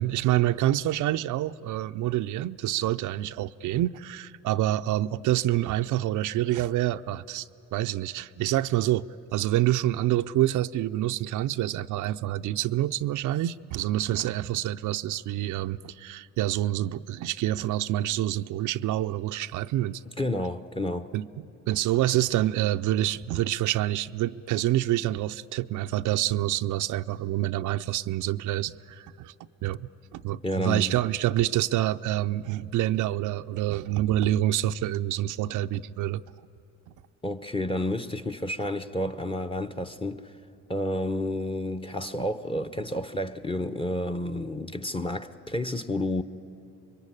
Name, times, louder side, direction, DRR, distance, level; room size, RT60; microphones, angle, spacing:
voice 1, 0.0-7.5 7.7-20.0 21.1-29.3 29.6-36.2, right 14 dB, 80° right, 0.5 m, -27 dB
voice 2, 20.1-21.1 30.4-31.0 37.2-40.4 40.7-46.2, left 1 dB, 15° left, 0.9 m, -30 dB
26.5 x 22.5 x 9.8 m
cardioid pair, 90°, 30 cm